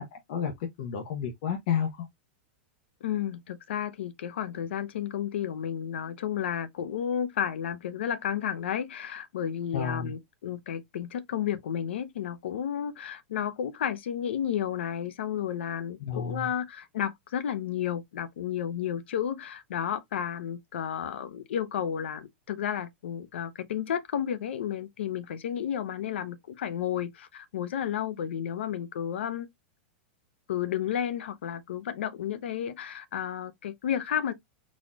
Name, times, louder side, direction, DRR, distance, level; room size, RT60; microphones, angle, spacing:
voice 1, 0.0-2.1 9.7-10.1 16.0-16.5, left 7 dB, 55° left, 1.0 m, -31 dB
voice 2, 3.0-29.5 30.5-34.3, left 9 dB, 85° left, 0.8 m, -32 dB
4.2 x 2.9 x 3.6 m
supercardioid pair, 160°, 6 cm